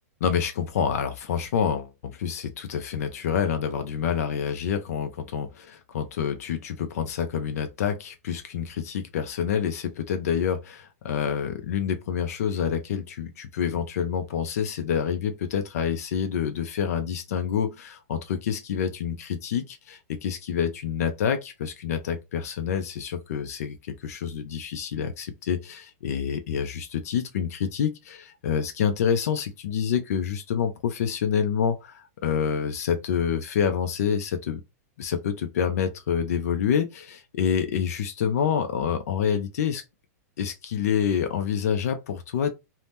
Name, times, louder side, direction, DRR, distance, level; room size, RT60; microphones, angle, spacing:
voice 1, 0.2-34.6 35.0-39.8 40.4-42.5, left 7 dB, 65° left, 0.5 m, -27 dB
2.7 x 2.1 x 3.3 m
supercardioid pair, 160°, 9 cm